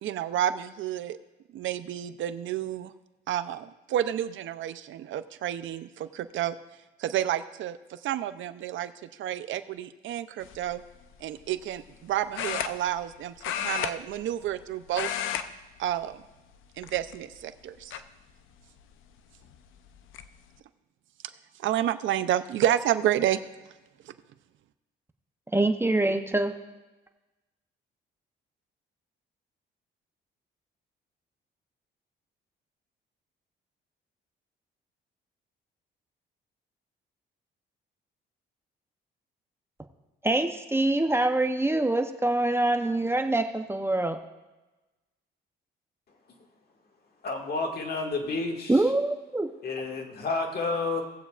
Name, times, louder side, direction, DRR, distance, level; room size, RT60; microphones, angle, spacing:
voice 1, 0.0-1.2 1.5-2.9 3.3-6.6 7.0-8.9 9.2-10.8 11.2-15.1 15.8-16.2 16.8-18.0 21.6-23.4 24.0-24.1, right 11 dB, 75° right, 12 dB, 0.6 m, -30 dB
sound 1, 10.4-10.7 12.3-13.1 13.4-14.6 14.9-15.5 15.8-16.0 16.8-17.3 17.9-18.0 19.5-19.6 19.9-20.3, left 9 dB, 85° left, 0.6 m, -32 dB
voice 2, 25.5-26.5 40.2-44.2 48.7-49.5, right 2 dB, 10° right, 6 dB, 0.8 m, -25 dB
voice 3, 47.2-48.8 49.6-51.0, left 3 dB, 50° left, 2 dB, 1.9 m, -30 dB
18.5 x 8.1 x 2.4 m, 1.1 s
cardioid pair, 90°, 20 cm